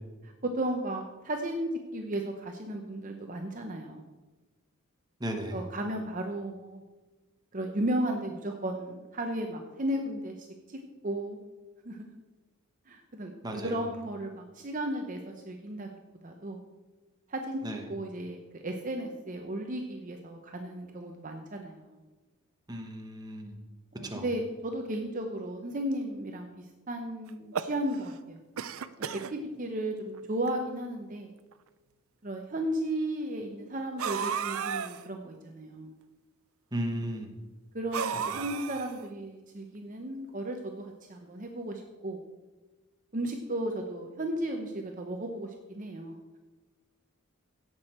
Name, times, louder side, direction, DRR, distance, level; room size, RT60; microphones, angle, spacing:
voice 1, 0.2-4.0 5.5-6.8 7.5-10.8 11.0-11.4 11.8-12.1 12.9-15.9 16.2-16.6 17.3-17.6 17.9-22.0 23.9-28.4 29.0-31.3 32.2-35.9 37.7-42.2 43.1-46.4, right 1 dB, 40° right, 3 dB, 0.8 m, -35 dB
voice 2, 5.2-5.6 13.4-13.8 17.6-17.8 22.7-23.6 24.0-24.2 36.7-37.3 38.1-38.2, right 1 dB, 20° right, 3 dB, 1.1 m, -35 dB
sound 1, 27.3-28.2 28.6-29.3 30.1-30.2 30.5-30.6 31.5-31.6 34.0-35.0 37.9-39.1, right 7 dB, 80° right, 0.5 m, -33 dB
16.5 x 6.3 x 4.4 m, 1.2 s
head